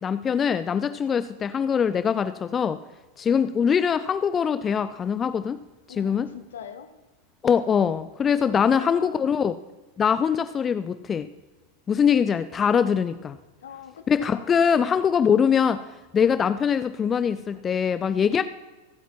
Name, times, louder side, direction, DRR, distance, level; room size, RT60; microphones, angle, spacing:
voice 1, 0.0-2.8 3.2-5.6 6.0-6.3 7.4-9.5 10.0-11.3 11.9-13.4 14.1-15.8 16.1-18.4, left 7 dB, 20° left, 13 dB, 0.4 m, -22 dB
voice 2, 5.9-6.9 8.4-9.2 13.6-14.6, left 8 dB, 65° left, 9 dB, 1.0 m, -43 dB
23.5 x 8.3 x 2.9 m, 1.2 s
figure-of-eight pair, 90°, 0 cm